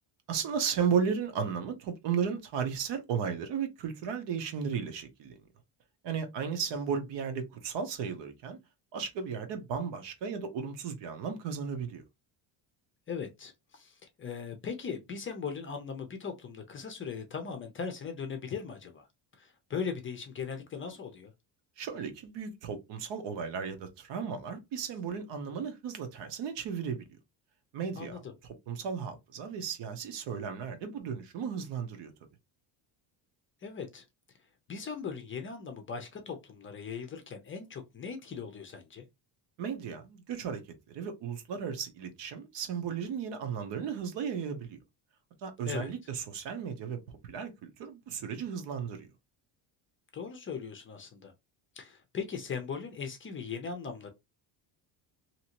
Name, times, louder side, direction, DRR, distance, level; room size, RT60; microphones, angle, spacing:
voice 1, 0.3-5.4 6.0-8.6 8.9-12.0 21.8-27.1 27.7-28.2 28.7-32.1 39.6-40.6 40.9-44.8 45.4-49.1, right 6 dB, 65° right, 0.9 m, -35 dB
voice 2, 13.1-19.1 19.4-21.3 28.0-28.3 33.6-34.0 34.7-39.1 45.6-45.9 50.1-51.3 51.8-54.1, left 6 dB, 25° left, 0.5 m, -39 dB
2.8 x 2.6 x 2.9 m
cardioid pair, 150°, 46 cm